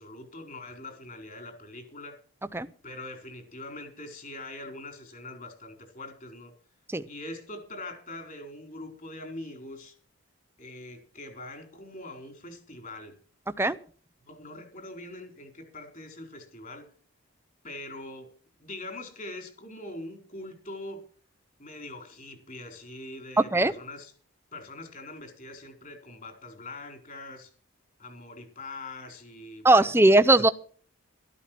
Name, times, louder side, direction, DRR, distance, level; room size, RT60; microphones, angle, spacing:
voice 1, 0.0-2.2 2.8-6.5 7.0-9.9 10.6-13.1 14.2-16.9 17.6-18.3 18.6-21.0 21.6-24.1 24.5-27.5 28.0-29.9, left 2 dB, 40° left, 5 dB, 4.5 m, -42 dB
voice 2, 23.4-23.7 29.6-30.5, right 2 dB, 10° right, 12 dB, 0.7 m, -19 dB
13.5 x 13.0 x 6.0 m, 0.43 s
head